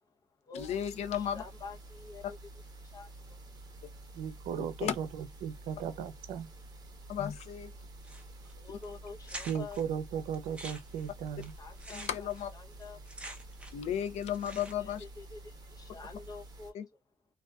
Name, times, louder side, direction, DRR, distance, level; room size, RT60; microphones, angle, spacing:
voice 1, 0.0-2.4 2.8-3.4 8.2-9.8 11.6-13.0 14.7-17.0, left 4 dB, 35° left, 0.7 m, -48 dB
voice 2, 0.6-1.4 4.8-4.9 7.1-7.7 11.9-12.5 13.7-15.0 16.7-16.8, left 9 dB, 70° left, 0.5 m, -34 dB
sound 1, 0.6-16.7, right 2 dB, 35° right, 0.9 m, -50 dB
voice 3, 4.1-6.5 9.5-11.5, right 8 dB, 80° right, 0.5 m, -36 dB
sound 2, 8.0-8.5 8.8-8.9 9.2-9.8 10.3-13.9 14.2-15.0, right 1 dB, 10° right, 0.6 m, -46 dB
2.5 x 2.3 x 2.2 m
cardioid pair, 105°, 12 cm